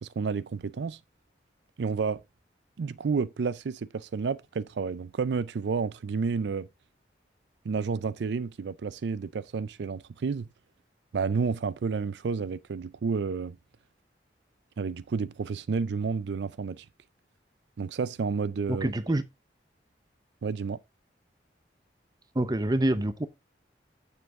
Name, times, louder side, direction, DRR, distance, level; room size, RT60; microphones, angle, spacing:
voice 1, 0.0-1.0 1.8-2.2 2.8-6.7 7.6-10.5 11.1-13.6 14.8-16.8 17.8-18.9 20.4-20.8, right 5 dB, 70° right, 0.4 m, -30 dB
voice 2, 18.7-19.2 22.3-23.3, right 1 dB, 20° right, 0.7 m, -26 dB
8.1 x 7.0 x 3.6 m
head